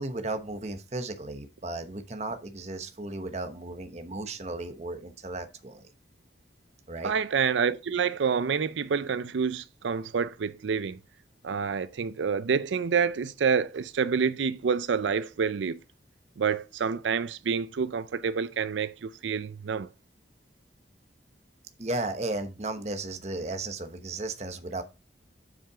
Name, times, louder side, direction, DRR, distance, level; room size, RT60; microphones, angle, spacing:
voice 1, 0.0-5.9 6.9-7.1 21.8-24.8, right 2 dB, 35° right, 1.1 m, -35 dB
voice 2, 7.0-11.0 11.4-15.8 16.4-19.9, right 6 dB, 90° right, 0.5 m, -28 dB
7.7 x 5.7 x 4.8 m
head